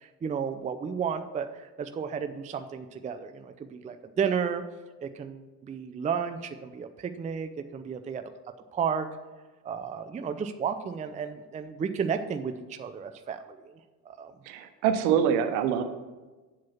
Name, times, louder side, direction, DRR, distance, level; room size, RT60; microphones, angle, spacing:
voice 1, 0.0-4.6 5.0-8.2 8.7-9.1 9.6-13.7 14.1-14.3, right 7 dB, 15° right, 8 dB, 0.5 m, -33 dB
voice 2, 14.5-15.8, right 8 dB, 65° right, 9 dB, 1.0 m, -25 dB
7.5 x 7.3 x 5.7 m, 1.2 s
figure-of-eight pair, 60°, 49 cm